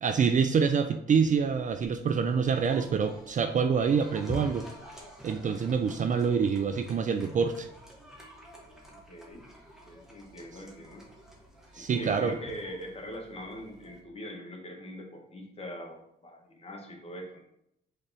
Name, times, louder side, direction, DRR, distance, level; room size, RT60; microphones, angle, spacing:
voice 1, 0.0-4.7 5.2-7.7 11.8-12.4, right 6 dB, 40° right, 7 dB, 0.4 m, -26 dB
sound 1, 1.1-14.0, equal, ahead, 1.3 m, -48 dB
voice 2, 8.9-9.4 9.8-11.0 11.7-17.4, equal, 30° left, 1 dB, 1.2 m, -42 dB
3.9 x 3.4 x 4.1 m, 0.77 s
cardioid pair, 90°, 20 cm